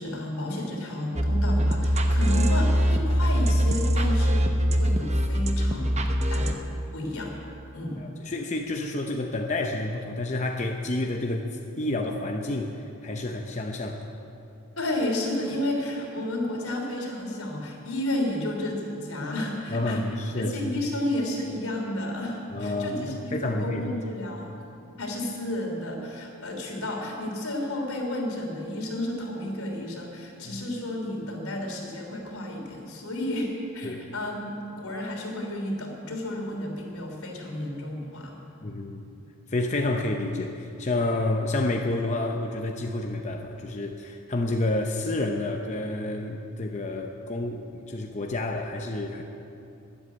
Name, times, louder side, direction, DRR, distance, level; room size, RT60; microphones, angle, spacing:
voice 1, 0.0-6.0 6.3-6.6 6.9-7.3 7.7-8.0 14.8-20.0 20.4-24.5 25.0-38.3, left 1 dB, 85° left, 0 dB, 3.2 m, -32 dB
sound 1, 1.2-6.5, equal, 30° right, 0.8 m, -23 dB
voice 2, 8.0-12.7 13.0-14.1 19.7-20.8 22.5-24.0 30.5-30.6 33.8-34.1 38.6-39.1 39.5-49.2, left 2 dB, 30° left, 2 dB, 0.8 m, -29 dB
13.0 x 11.5 x 9.0 m, 2.8 s
head